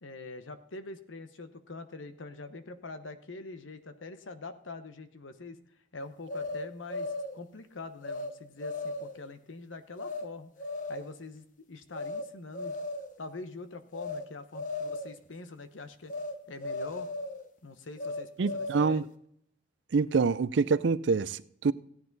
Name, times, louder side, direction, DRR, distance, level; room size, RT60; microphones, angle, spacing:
voice 1, 0.0-5.6 5.9-10.5 10.9-12.8 13.2-16.1 16.5-17.1 17.6-19.0, left 3 dB, 85° left, 1.0 m, -44 dB
sound 1, 6.3-7.4 8.0-8.3 8.6-9.2 10.0-10.3 10.6-11.1 11.9-12.3 12.5-13.2 13.9-14.3 14.5-15.2 16.1-16.4 16.6-17.4 18.0-19.0, left 2 dB, 45° left, 0.9 m, -36 dB
voice 2, 18.4-19.1 19.9-21.7, right 4 dB, 70° right, 0.5 m, -26 dB
15.5 x 9.6 x 4.0 m
head